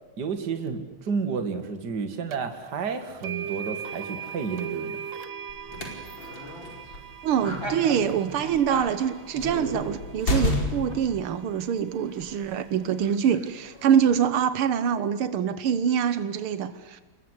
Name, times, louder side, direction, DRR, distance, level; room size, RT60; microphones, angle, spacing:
voice 1, 0.2-5.0, right 5 dB, 50° right, 8 dB, 2.7 m, -31 dB
sound 1, 2.3-2.4 3.2-11.3, right 8 dB, 70° right, 1.9 m, -39 dB
sound 2, 5.5-11.1, left 1 dB, 60° left, 5.5 m, -31 dB
sound 3, 6.1-14.3, right 1 dB, 10° right, 4.5 m, -43 dB
voice 2, 7.2-17.0, right 8 dB, 85° right, 13 dB, 2.0 m, -25 dB
28.5 x 21.5 x 8.2 m, 1.2 s
omnidirectional pair, 2.3 m